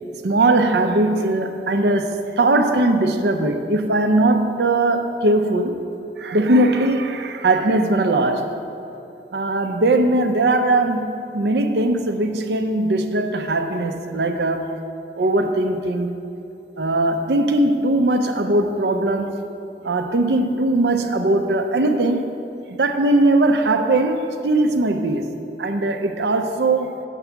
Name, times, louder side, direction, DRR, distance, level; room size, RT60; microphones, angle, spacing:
voice 1, 0.2-5.8 6.2-8.5 9.3-14.7 15.2-16.3 16.8-19.4 19.8-22.3 22.8-27.0, right 2 dB, 75° right, 6 dB, 0.6 m, -20 dB
9.0 x 4.7 x 7.0 m, 2.7 s
head